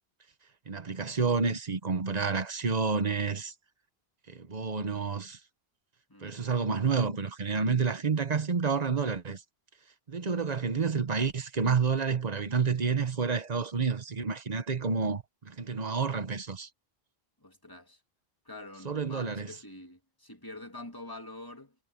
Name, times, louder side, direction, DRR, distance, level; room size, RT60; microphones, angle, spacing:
voice 1, 0.7-3.5 4.3-5.4 6.2-9.4 10.1-16.7 18.8-19.5, right 5 dB, 45° right, 1.1 m, -29 dB
voice 2, 17.4-18.0 18.4-21.7, left 2 dB, 20° left, 2.7 m, -46 dB
omnidirectional pair, 1.0 m